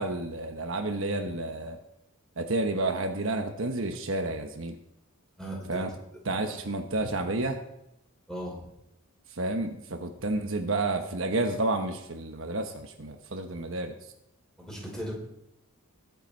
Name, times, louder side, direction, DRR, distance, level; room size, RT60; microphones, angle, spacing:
voice 1, 0.0-1.8 2.4-4.8 5.7-5.9 6.3-7.6 9.4-13.9, right 2 dB, 60° right, 5 dB, 1.1 m, -30 dB
voice 2, 5.4-6.0 6.4-6.6 8.3-8.6 14.6-15.1, equal, 5° left, -4 dB, 5.5 m, -37 dB
21.5 x 8.1 x 4.5 m, 0.81 s
head